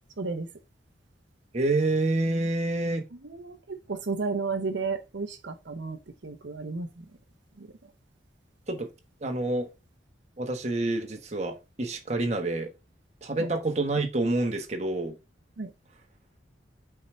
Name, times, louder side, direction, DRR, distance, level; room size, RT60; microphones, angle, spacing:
voice 1, 0.2-0.5 2.3-2.5 3.2-7.1 7.6-7.9 13.4-13.5 15.6-15.7, right 4 dB, 70° right, 0.8 m, -33 dB
voice 2, 1.5-3.0 8.7-8.9 9.2-9.7 10.4-12.7 13.2-15.2, right 2 dB, 35° right, 1.2 m, -27 dB
5.5 x 4.7 x 4.3 m
head